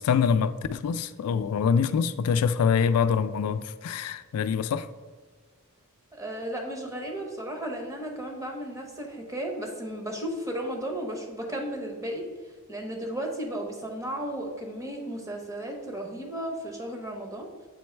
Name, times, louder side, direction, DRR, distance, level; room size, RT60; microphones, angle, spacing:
voice 1, 0.0-4.9, left 6 dB, 85° left, 0.3 m, -25 dB
voice 2, 6.1-12.2 12.7-17.5, right 1 dB, 15° right, 0.9 m, -34 dB
7.6 x 3.2 x 4.5 m
head